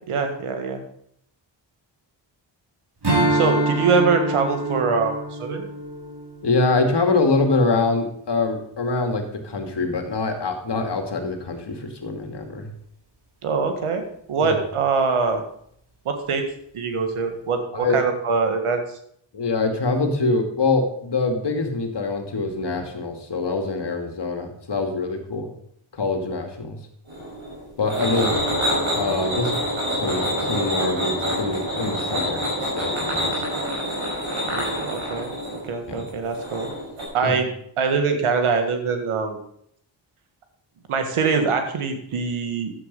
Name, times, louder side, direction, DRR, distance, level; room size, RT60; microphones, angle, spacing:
voice 1, 0.1-0.8 3.3-5.7 13.4-14.0 14.3-15.4 16.0-16.5 16.7-18.8 28.0-28.3 34.4-35.3 35.6-36.7 37.1-37.5 37.8-39.4 40.9-42.7, right 5 dB, 85° right, 6 dB, 1.8 m, -23 dB
Strum, 3.0-7.7, right 1 dB, 55° right, 5.3 m, -26 dB
voice 2, 6.4-12.7 14.4-14.6 17.7-18.0 19.3-25.5 25.9-26.8 27.8-28.3 28.9-29.5 29.9-33.4 35.9-36.0 37.2-37.4, left 3 dB, 55° left, 5 dB, 2.4 m, -24 dB
sound 1, 27.1-37.0, equal, 70° right, 5.5 m, -26 dB
11.0 x 8.0 x 5.4 m, 0.69 s
cardioid pair, 45°, 49 cm